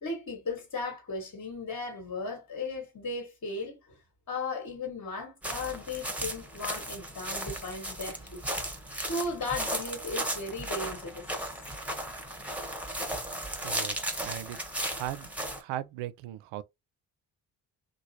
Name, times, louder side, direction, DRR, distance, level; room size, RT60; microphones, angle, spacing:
voice 1, 0.0-4.0 4.3-8.6 9.1-11.2, left 3 dB, 40° left, 1.5 m, -36 dB
sound 1, 5.4-15.6, right 1 dB, 5° right, 1.2 m, -35 dB
voice 2, 13.6-14.6 14.9-15.3 15.6-16.6, right 13 dB, 70° right, 0.6 m, -38 dB
2.9 x 2.4 x 2.8 m
hypercardioid pair, 45°, 47 cm